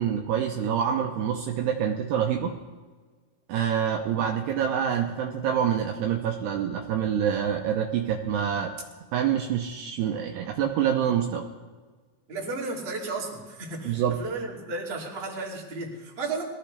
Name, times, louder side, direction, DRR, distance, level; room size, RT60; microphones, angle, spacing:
voice 1, 0.0-2.6 3.5-8.7 9.1-11.5 13.8-14.2, right 8 dB, 75° right, 2 dB, 2.6 m, -26 dB
voice 2, 12.3-16.4, right 3 dB, 20° right, -5 dB, 2.0 m, -34 dB
22.0 x 15.0 x 3.3 m, 1.4 s
omnidirectional pair, 5.4 m